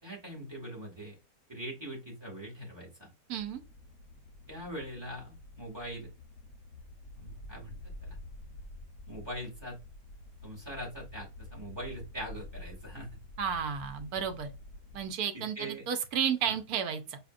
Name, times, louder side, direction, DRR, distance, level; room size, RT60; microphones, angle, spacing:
voice 1, 0.0-1.2 1.5-3.1 4.5-6.1 7.2-8.2 9.1-9.8 10.4-13.1 15.3-15.9 16.5-16.6, right 1 dB, 15° right, 1.8 m, -42 dB
sound 1, 3.3-15.1, left 2 dB, 65° left, 1.0 m, -49 dB
voice 2, 3.3-3.6 13.4-14.5 14.9-17.2, right 8 dB, 85° right, 1.2 m, -32 dB
5.0 x 2.8 x 2.5 m
omnidirectional pair, 1.6 m